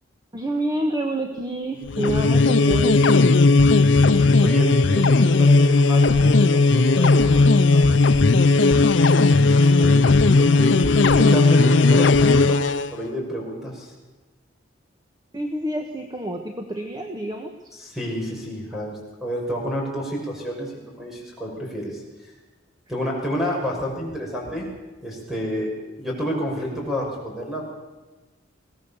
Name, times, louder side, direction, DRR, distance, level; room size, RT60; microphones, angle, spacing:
voice 1, 0.3-3.4 15.3-17.5, right 1 dB, 20° right, 4 dB, 1.3 m, -28 dB
sound 1, 1.9-12.9, left 3 dB, 70° left, 0.6 m, -16 dB
voice 2, 4.4-8.0 8.4-8.7 9.5-12.6 12.9-13.9 17.8-22.0 22.9-24.7 25.0-25.7 26.0-27.7, equal, ahead, -2 dB, 6.1 m, -30 dB
21.5 x 17.5 x 7.1 m, 1.2 s
head